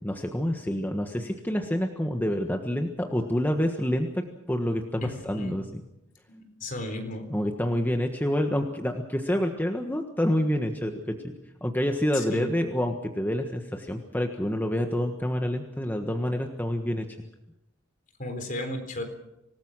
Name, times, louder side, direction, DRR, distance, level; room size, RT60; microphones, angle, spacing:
voice 1, 0.0-5.8 7.3-11.3 11.6-17.1, equal, 10° left, 4 dB, 1.4 m, -28 dB
voice 2, 5.0-5.5 6.3-7.2 12.1-12.5 18.2-19.0, left 1 dB, 45° left, 6 dB, 3.9 m, -35 dB
26.0 x 19.0 x 6.3 m, 0.89 s
head